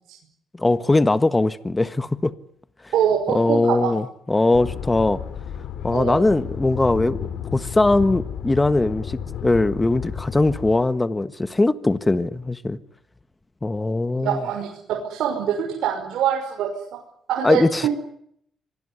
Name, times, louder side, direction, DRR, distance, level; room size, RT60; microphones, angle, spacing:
voice 1, 0.6-2.3 3.3-5.2 5.8-7.2 7.5-12.8 13.6-14.4 17.4-17.9, left 2 dB, 15° left, 1.5 m, -20 dB
voice 2, 2.9-3.9 5.9-6.2 14.2-14.7 15.1-16.7 17.3-17.9, right 9 dB, 80° right, 5.9 m, -24 dB
sound 1, 4.5-10.8, left 7 dB, 75° left, 3.5 m, -32 dB
26.0 x 19.5 x 9.9 m
cardioid pair, 90°, 0 cm